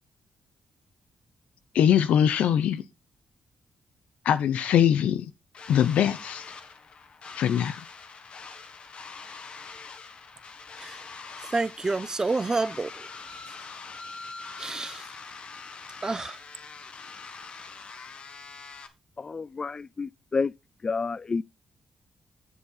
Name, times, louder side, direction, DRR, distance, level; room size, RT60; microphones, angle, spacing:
voice 1, 1.7-2.8 4.3-5.2 5.7-6.4 7.4-7.8, left 9 dB, 85° left, 0.8 m, -22 dB
sound 1, 5.5-18.9, left 4 dB, 55° left, 1.5 m, -43 dB
voice 2, 10.8-13.1 14.6-15.1 16.0-16.4, right 3 dB, 30° right, 0.7 m, -29 dB
voice 3, 19.2-20.5 20.8-21.4, left 4 dB, 35° left, 0.4 m, -29 dB
10.0 x 6.7 x 4.0 m
cardioid pair, 70°, 2 cm